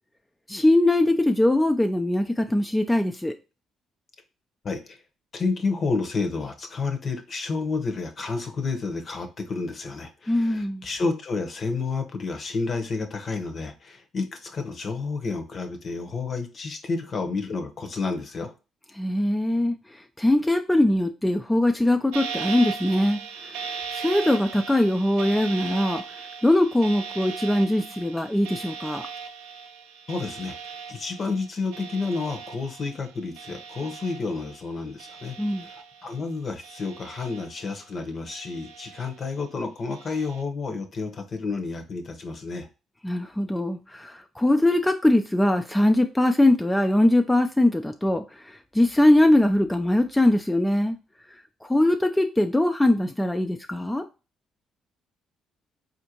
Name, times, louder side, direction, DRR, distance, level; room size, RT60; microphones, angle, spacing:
voice 1, 0.5-3.3 10.3-10.8 19.0-19.7 20.2-23.2 23.9-26.0 26.4-29.0 35.4-35.6 43.0-48.2 48.7-51.0 51.6-54.0, left 1 dB, 10° left, 0.4 m, -21 dB
voice 2, 4.6-5.0 5.3-18.5 30.1-30.6 30.9-35.4 35.6-42.7, left 4 dB, 50° left, 0.8 m, -30 dB
sound 1, 22.1-34.7 35.0-36.2 36.6-37.8 38.3-39.3 39.9-40.4, right 6 dB, 90° right, 0.4 m, -38 dB
4.2 x 2.6 x 2.8 m
supercardioid pair, 60°, 0 cm